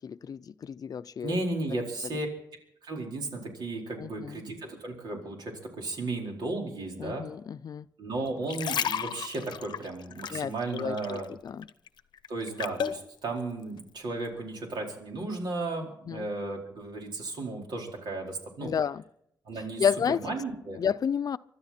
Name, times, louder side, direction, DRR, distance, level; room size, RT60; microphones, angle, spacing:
voice 1, 0.0-1.4 4.0-4.4 7.0-7.9 10.3-11.7 16.1-16.3 18.6-19.0 19.8-20.3 20.7-21.4, left 7 dB, 60° left, 0.5 m, -31 dB
voice 2, 1.2-2.3 2.8-7.3 8.0-11.3 12.3-18.7 19.4-19.9 20.1-20.8, right 2 dB, 80° right, 4.5 m, -34 dB
sound 1, 8.3-11.3 11.6-13.0 13.6-13.8, left 8 dB, 85° left, 0.8 m, -33 dB
24.5 x 13.0 x 4.4 m
cardioid pair, 95°, 7 cm